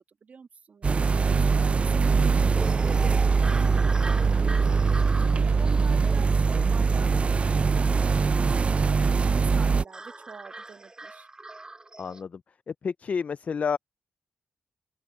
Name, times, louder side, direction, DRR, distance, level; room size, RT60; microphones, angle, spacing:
voice 1, 0.0-9.0 9.3-11.3, right 5 dB, 55° right, 2.1 m, -46 dB
sound 1, 0.8-9.8, right 5 dB, 40° right, 0.4 m, -22 dB
sound 2, 2.6-12.2, right 2 dB, 25° right, 2.8 m, -41 dB
voice 2, 12.0-12.4 12.7-13.8, left 6 dB, 50° left, 0.3 m, -30 dB
cardioid pair, 75°, 3 cm